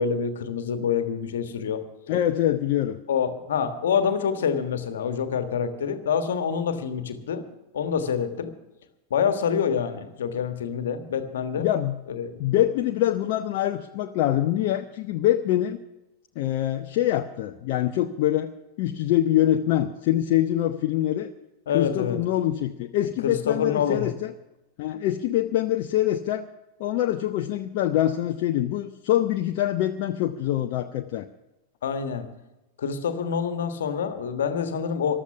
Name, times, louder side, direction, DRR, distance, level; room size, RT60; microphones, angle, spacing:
voice 1, 0.0-1.8 3.1-7.4 7.7-8.5 9.1-11.7 12.1-12.4 21.7-22.2 23.2-24.1 31.8-32.3 32.8-35.2, left 7 dB, 60° left, 9 dB, 1.5 m, -26 dB
voice 2, 2.1-3.0 11.6-12.0 12.4-15.8 16.4-18.5 18.8-21.3 21.7-24.3 24.8-26.5 26.8-31.3, left 12 dB, 45° left, 6 dB, 0.7 m, -24 dB
14.5 x 12.5 x 5.9 m, 0.98 s
figure-of-eight pair, 90°, 0 cm